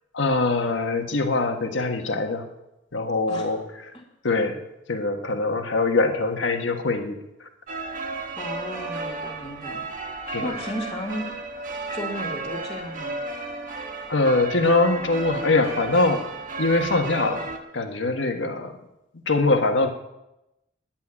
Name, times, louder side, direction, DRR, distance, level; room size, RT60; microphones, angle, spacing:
voice 1, 0.1-2.4 2.9-3.6 4.2-4.6 4.9-7.2 10.3-10.5 14.1-16.2 16.6-17.5 17.7-18.8 19.3-19.9, left 3 dB, 75° left, 5 dB, 1.5 m, -23 dB
sound 1, 7.7-17.6, right 3 dB, 45° right, 1.5 m, -33 dB
voice 2, 8.4-9.8 10.4-11.3 11.9-13.2, equal, 25° left, -3 dB, 2.1 m, -34 dB
10.5 x 8.6 x 9.9 m, 0.92 s
head